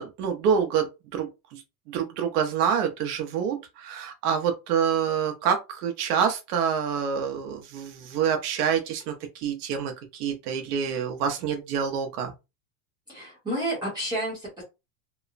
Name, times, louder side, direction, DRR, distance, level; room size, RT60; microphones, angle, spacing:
voice 1, 0.0-1.6 1.9-12.3, right 7 dB, 70° right, 0.7 m, -27 dB
voice 2, 13.1-14.6, right 1 dB, 10° right, 0.8 m, -30 dB
3.0 x 2.0 x 2.4 m
supercardioid pair, 170°, 49 cm